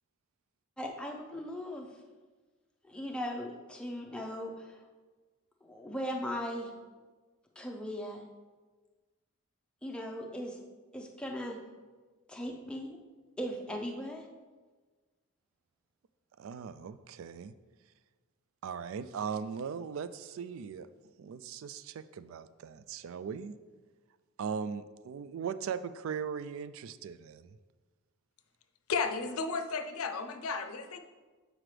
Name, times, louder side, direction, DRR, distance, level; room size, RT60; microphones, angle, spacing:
voice 1, 0.8-1.9 2.8-4.8 5.6-6.7 7.6-8.3 9.8-10.6 10.9-11.6 12.3-13.0 13.4-14.2, equal, 5° left, 1 dB, 0.5 m, -38 dB
voice 2, 16.4-17.5 18.6-20.9 21.2-23.5 24.4-27.6, right 6 dB, 65° right, 14 dB, 0.3 m, -39 dB
voice 3, 28.9-31.0, left 4 dB, 80° left, 8 dB, 0.6 m, -33 dB
7.6 x 4.9 x 3.2 m, 1.3 s
head